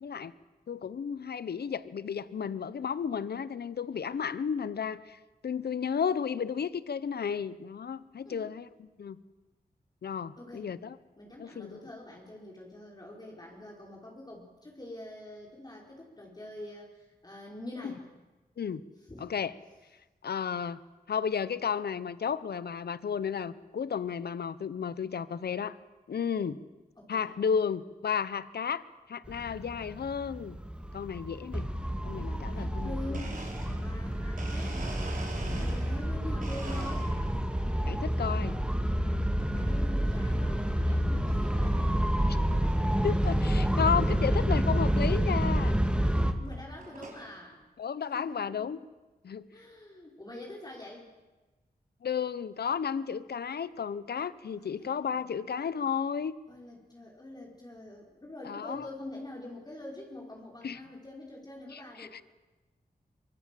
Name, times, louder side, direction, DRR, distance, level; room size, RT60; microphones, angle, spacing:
voice 1, 0.0-0.3 0.7-8.6 9.0-9.2 10.0-11.0 11.4-11.8 17.8-17.9 18.6-18.8 19.2-19.5 20.2-20.8 21.1-25.8 26.1-26.6 27.1-28.8 29.1-30.6 30.9-31.7 32.0-33.2 33.7-33.8 35.4-35.7 37.9-38.6 43.0-45.7 47.8-48.8 49.2-49.4 52.0-56.3 58.4-58.9 60.6-60.8 61.7-62.2, left 7 dB, 85° left, 16 dB, 0.9 m, -33 dB
voice 2, 10.4-10.7 11.2-18.1 19.1-19.3 27.0-27.3 32.5-33.3 33.7-34.8 35.3-37.2 39.6-41.8 43.6-43.9 46.4-47.6 48.1-48.7 49.5-51.1 54.6-55.2 56.5-62.1, left 1 dB, 25° left, -2 dB, 4.9 m, -45 dB
sound 1, 29.3-46.3, equal, 5° right, 2.2 m, -29 dB
Domestic sounds home sounds, 33.1-36.1 36.4-37.4 37.9-38.4 39.4-39.7 40.3-40.4 41.3-41.4 41.6-42.0 42.4-42.5 42.7-42.8 43.2-43.3 44.6-44.7 45.5-45.7 46.3-47.3, right 2 dB, 55° right, 5.5 m, -44 dB
24.5 x 24.0 x 7.7 m, 1.2 s
wide cardioid pair, 85°, 16 cm